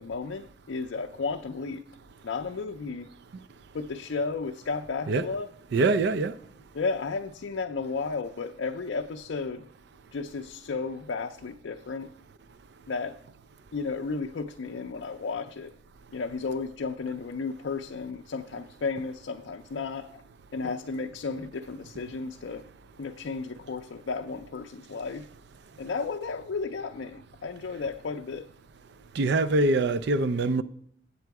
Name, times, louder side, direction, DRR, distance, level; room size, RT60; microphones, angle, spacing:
voice 1, 0.0-1.8 2.2-3.1 3.7-5.5 6.7-9.7 10.1-12.1 12.9-13.2 13.7-15.7 16.1-20.2 20.5-22.6 23.0-25.3 25.8-28.5, left 4 dB, 70° left, 0.5 m, -33 dB
voice 2, 5.7-6.3 29.2-30.6, right 2 dB, 60° right, 0.4 m, -24 dB
8.3 x 7.7 x 4.6 m
head